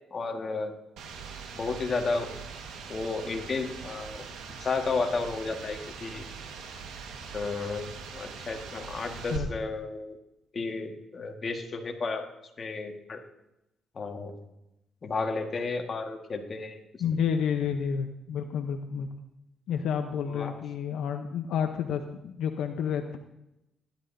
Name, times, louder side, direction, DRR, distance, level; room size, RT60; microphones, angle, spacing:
voice 1, 0.1-0.7 1.5-2.4 2.9-4.2 4.6-6.3 7.3-10.2 10.5-12.3 12.6-13.2 13.9-14.4 15.0-16.8 20.3-20.5, left 3 dB, 40° left, 3 dB, 1.6 m, -32 dB
sound 1, 1.0-9.4, right 5 dB, 85° right, 1.5 m, -42 dB
voice 2, 17.0-19.1 19.7-23.2, left 7 dB, 80° left, 6 dB, 0.8 m, -30 dB
16.5 x 11.0 x 2.7 m, 0.89 s
cardioid pair, 90°, 0 cm